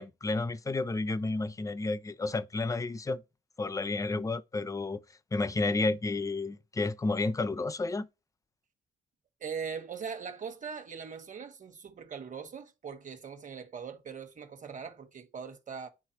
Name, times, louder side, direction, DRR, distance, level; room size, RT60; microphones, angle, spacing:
voice 1, 0.0-3.2 3.6-5.0 5.3-8.1, left 3 dB, 15° left, 0.5 m, -31 dB
voice 2, 9.4-15.9, right 6 dB, 40° right, 1.3 m, -41 dB
9.9 x 3.6 x 2.9 m
cardioid pair, 90°, 20 cm